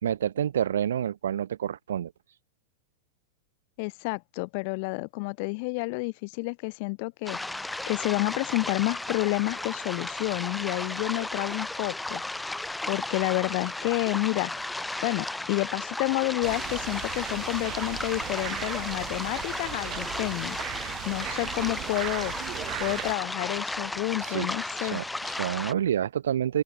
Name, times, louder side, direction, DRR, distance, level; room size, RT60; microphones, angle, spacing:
voice 1, 0.0-2.1 20.8-21.0 24.2-24.5 24.8-26.6, right 10 dB, 65° right, 5.6 m, -28 dB
voice 2, 3.8-7.4 7.9-12.2 12.9-14.5 15.0-20.6 21.0-22.3 22.8-25.0, left 31 dB, 45° left, 3.7 m, -29 dB
sound 1, 7.3-25.7, left 2 dB, 5° left, 4.6 m, -34 dB
sound 2, 16.4-23.1, right 21 dB, 40° right, 3.4 m, -37 dB
open air
figure-of-eight pair, 90°, 0 cm